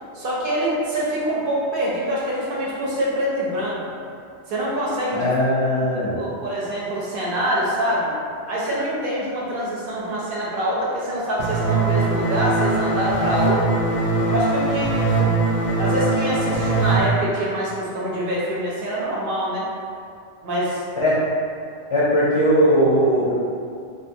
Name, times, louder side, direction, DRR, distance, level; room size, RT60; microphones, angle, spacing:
voice 1, 0.1-3.8 4.5-5.4 5.8-8.1 8.5-13.7 14.3-14.9 15.2-15.3 15.8-19.7 20.4-20.8, equal, 60° right, -6 dB, 0.7 m, -25 dB
voice 2, 5.1-6.2 21.0-21.2 21.9-23.3, equal, 50° left, -8 dB, 0.3 m, -19 dB
sound 1, 11.4-17.0, right 3 dB, 90° left, 0.9 m, -21 dB
2.5 x 2.4 x 2.6 m, 2.3 s
omnidirectional pair, 1.1 m